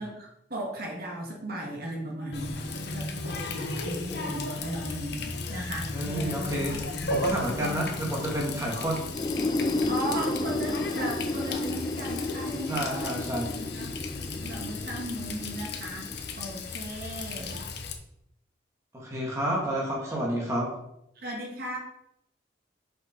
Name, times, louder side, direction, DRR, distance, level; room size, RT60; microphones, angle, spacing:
voice 1, 0.0-2.7 2.9-7.1 7.5-8.1 8.7-8.9 9.9-13.9 14.4-16.1 16.3-17.6 20.1-20.2 21.1-21.8, right 1 dB, 55° right, -1 dB, 1.6 m, -37 dB
Water tap faucet, 2.3-17.9, left 3 dB, 60° left, 0.9 m, -35 dB
voice 2, 5.9-6.8 7.1-9.0 12.7-13.5 18.9-20.7, right 1 dB, 15° right, -2 dB, 1.7 m, -30 dB
sound 1, 9.0-16.7, left 2 dB, 20° left, 0.4 m, -32 dB
6.0 x 5.3 x 5.1 m, 0.79 s
head